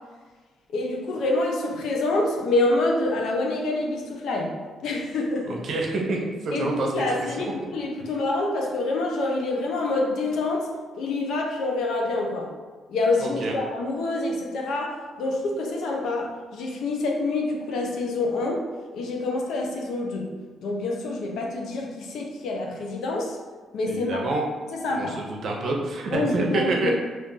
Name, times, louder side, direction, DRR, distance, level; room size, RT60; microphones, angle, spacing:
voice 1, 0.7-4.6 4.8-5.6 6.5-10.7 11.0-12.5 12.9-18.7 18.9-20.3 20.6-23.4 23.7-24.3 24.7-25.2 26.1-26.9, left 2 dB, 75° left, 1 dB, 0.5 m, -27 dB
voice 2, 5.6-6.9 7.4-7.5 13.2-13.5 23.9-24.4 24.9-26.9, right 2 dB, 60° right, 0 dB, 0.7 m, -27 dB
2.5 x 2.4 x 3.7 m, 1.4 s
cardioid pair, 90°, 0 cm